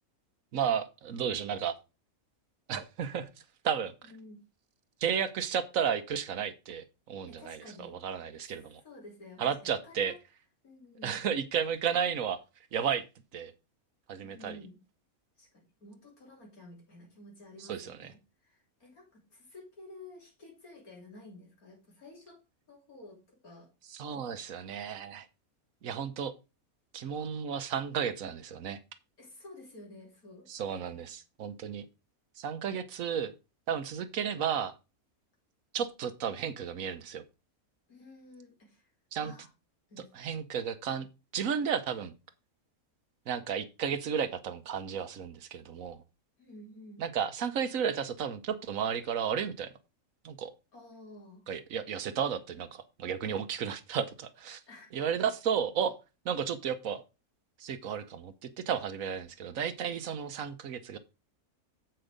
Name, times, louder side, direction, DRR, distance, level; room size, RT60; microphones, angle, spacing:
voice 1, 0.5-1.7 2.7-3.3 3.6-3.9 5.0-8.8 9.4-10.1 11.0-12.4 12.7-13.0 13.3-13.5 14.1-14.6 17.6-18.1 23.9-25.3 25.8-26.3 26.9-28.8 30.5-31.9 32.4-33.3 33.7-34.7 35.7-37.2 39.1-39.3 40.1-41.1 41.3-42.1 43.3-46.0 47.0-49.7 50.2-50.5 51.5-54.6 54.9-55.9 56.2-57.0 57.6-61.0, right 7 dB, 70° right, 11 dB, 1.2 m, -33 dB
voice 2, 4.0-4.4 7.3-8.0 8.8-10.2 10.6-11.2 14.2-14.8 15.4-22.4 22.7-23.7 24.1-24.4 29.2-30.5 37.9-38.9 39.2-39.5 39.9-40.1 46.4-47.0 50.7-51.4 54.7-54.9, left 2 dB, 75° left, 0 dB, 3.7 m, -51 dB
7.8 x 6.2 x 5.0 m, 0.28 s
omnidirectional pair, 1.5 m